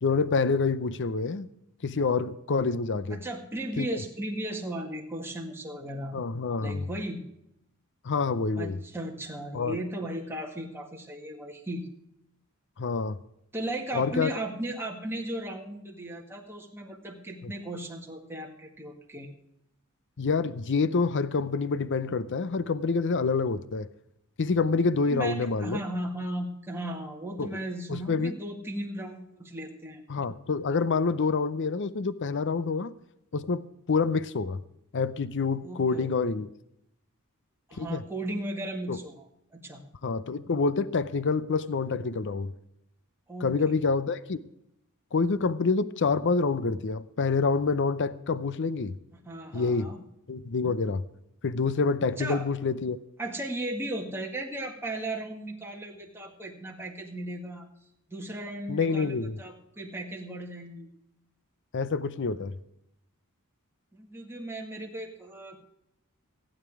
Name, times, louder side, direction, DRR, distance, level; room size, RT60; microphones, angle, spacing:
voice 1, 0.0-1.5 1.8-3.2 3.8-4.0 6.1-6.8 8.0-8.8 9.5-9.8 12.8-13.2 13.9-14.3 17.4-17.5 20.2-23.9 24.4-25.8 27.4-27.5 27.9-28.3 30.1-32.9 33.3-33.6 33.9-34.6 34.9-36.5 37.8-38.0 38.9-39.0 40.0-42.5 43.4-44.4 45.1-49.0 49.5-49.9 50.3-51.0 51.4-53.0 58.7-59.4 61.7-62.5, left 4 dB, 55° left, 0.6 m, -27 dB
voice 2, 3.1-6.2 6.6-7.2 8.6-11.9 13.5-19.3 25.1-30.0 35.6-36.1 37.7-39.8 43.3-43.5 49.2-50.0 52.2-52.5 53.2-57.7 58.1-60.9 63.9-65.6, right 1 dB, 10° right, 1.9 m, -36 dB
15.5 x 9.0 x 4.8 m
head